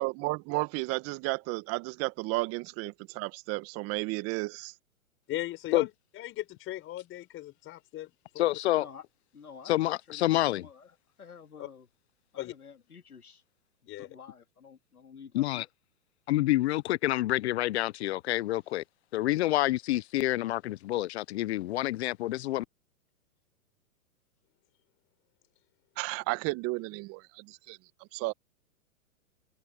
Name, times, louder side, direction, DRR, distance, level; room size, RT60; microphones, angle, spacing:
voice 1, 0.0-4.7 26.0-27.8 28.1-28.3, right 23 dB, 35° right, 1.5 m, -33 dB
voice 2, 5.3-8.6 11.6-11.7 12.4-12.5 13.9-14.2, left 14 dB, 30° left, 4.5 m, -38 dB
voice 3, 8.4-8.9 9.7-10.6 15.3-15.6 16.3-18.8 19.1-22.6, left 16 dB, 50° left, 0.7 m, -28 dB
voice 4, 9.3-11.9 12.3-13.4 14.0-15.7 18.7-18.8, left 6 dB, 90° left, 3.4 m, -51 dB
hypercardioid pair, 120°, 43 cm